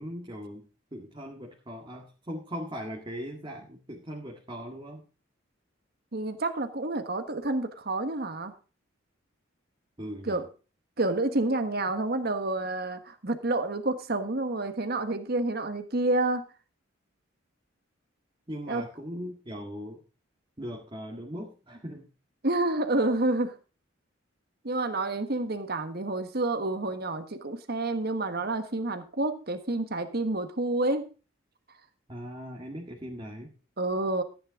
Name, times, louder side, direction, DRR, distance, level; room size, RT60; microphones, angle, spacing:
voice 1, 0.0-5.0 10.0-10.4 18.5-20.0 20.6-22.1 32.1-33.5, equal, 25° right, 0 dB, 2.0 m, -39 dB
voice 2, 6.1-8.5 10.2-10.5 11.0-16.4 18.7-18.8 22.4-23.6 24.6-31.1 33.8-34.2, right 2 dB, 50° right, 8 dB, 1.4 m, -29 dB
14.0 x 10.0 x 3.7 m, 0.34 s
head